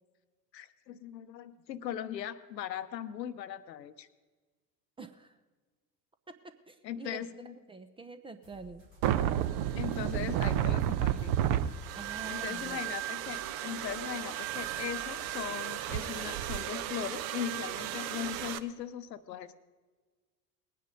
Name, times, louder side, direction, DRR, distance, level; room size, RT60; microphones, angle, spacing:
voice 1, 0.5-4.1 6.8-7.5 9.7-11.4 12.3-19.5, left 10 dB, 80° left, 13 dB, 0.8 m, -39 dB
voice 2, 5.0-5.4 6.3-8.8 12.0-12.8, right 3 dB, 10° right, 10 dB, 0.4 m, -47 dB
sound 1, 8.4-16.4, equal, 85° right, 3.2 m, -57 dB
sound 2, 9.0-18.6, right 11 dB, 50° right, 0.8 m, -32 dB
19.5 x 9.3 x 5.2 m, 1.4 s
figure-of-eight pair, 75°, 50 cm